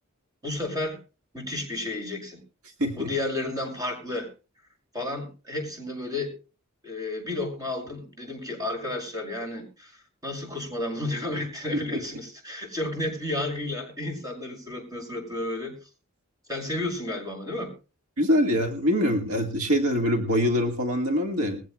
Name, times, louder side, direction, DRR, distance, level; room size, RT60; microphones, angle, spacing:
voice 1, 0.4-1.0 1.3-2.4 2.9-4.3 4.9-6.3 6.8-10.0 10.2-15.7 16.5-17.7, left 2 dB, 15° right, 2 dB, 6.2 m, -32 dB
voice 2, 2.8-3.1 18.2-21.6, equal, 75° right, 3 dB, 1.8 m, -24 dB
21.0 x 16.0 x 2.3 m, 0.33 s
head